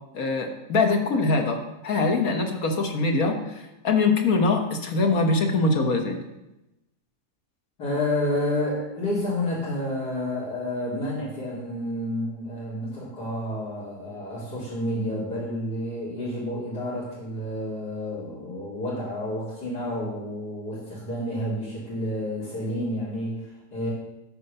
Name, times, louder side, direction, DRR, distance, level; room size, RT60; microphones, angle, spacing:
voice 1, 0.1-6.2, left 3 dB, 60° left, 3 dB, 1.7 m, -23 dB
voice 2, 7.8-23.9, left 1 dB, 90° left, -10 dB, 3.7 m, -30 dB
13.5 x 4.9 x 6.7 m, 0.94 s
omnidirectional pair, 1.7 m